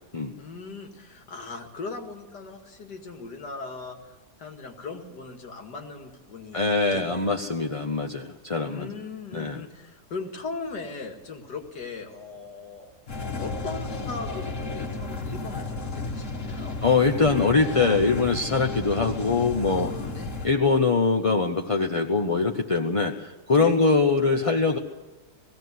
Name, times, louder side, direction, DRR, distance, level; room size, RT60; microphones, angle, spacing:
voice 1, 0.4-6.6 6.9-7.4 8.6-12.9 13.4-16.8 19.7-20.4 23.6-23.9, left 4 dB, 85° left, 5 dB, 2.6 m, -39 dB
voice 2, 6.5-8.9 9.3-9.6 16.8-19.9 20.4-24.8, left 4 dB, 30° left, 3 dB, 0.6 m, -23 dB
sound 1, 13.1-20.5, left 3 dB, 50° left, 1.9 m, -33 dB
18.0 x 16.5 x 9.4 m, 1.2 s
omnidirectional pair, 1.8 m